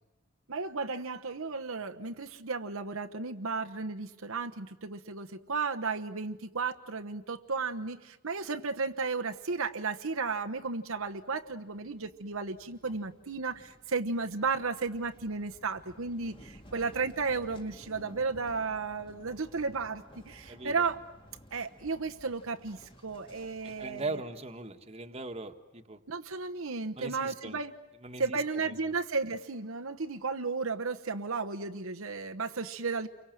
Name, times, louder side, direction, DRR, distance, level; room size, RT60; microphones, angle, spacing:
voice 1, 0.5-21.0 21.5-24.2 26.1-27.7 28.2-33.1, right 4 dB, 70° right, 4 dB, 1.2 m, -34 dB
sound 1, 8.4-8.8 9.1-24.1, equal, 25° left, 2.3 m, -55 dB
voice 2, 20.5-20.8 23.6-26.0 26.9-27.6 28.0-28.7, right 2 dB, 30° right, 5 dB, 1.7 m, -40 dB
30.0 x 24.0 x 7.7 m, 1.0 s
head